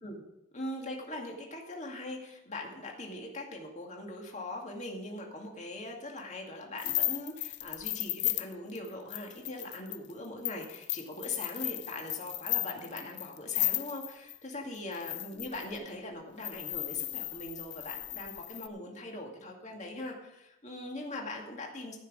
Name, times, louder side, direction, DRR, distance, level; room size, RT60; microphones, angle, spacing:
voice 1, 0.5-22.0, left 2 dB, 35° left, 0 dB, 2.3 m, -41 dB
sound 1, 6.8-14.4 14.9-15.8 16.4-18.7, left 17 dB, 50° left, 0.5 m, -35 dB
14.5 x 6.1 x 7.4 m, 0.88 s
head